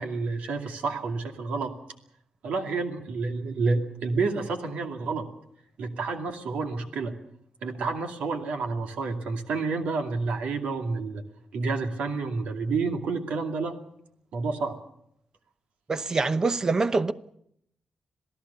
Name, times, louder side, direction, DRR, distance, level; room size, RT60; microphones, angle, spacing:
voice 1, 0.0-1.7 2.4-5.3 5.8-7.1 7.6-11.2 11.5-13.8 14.3-14.8, right 4 dB, 80° right, 2.5 m, -29 dB
voice 2, 15.9-17.1, right 3 dB, 30° right, 0.8 m, -24 dB
27.0 x 17.0 x 6.9 m
cardioid pair, 110°, 2 cm